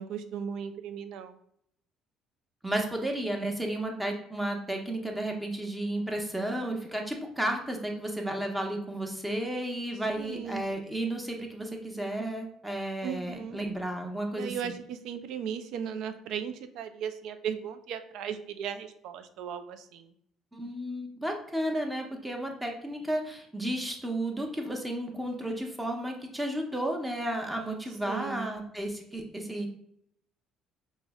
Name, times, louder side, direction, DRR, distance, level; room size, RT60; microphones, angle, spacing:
voice 1, 0.0-1.4 10.2-10.6 13.0-13.6 14.3-20.1 28.1-28.5, right 8 dB, 70° right, 9 dB, 0.4 m, -37 dB
voice 2, 2.6-14.8 20.5-29.7, right 1 dB, 10° right, 2 dB, 0.9 m, -33 dB
4.7 x 2.1 x 3.5 m, 0.71 s
hypercardioid pair, 65°, 0 cm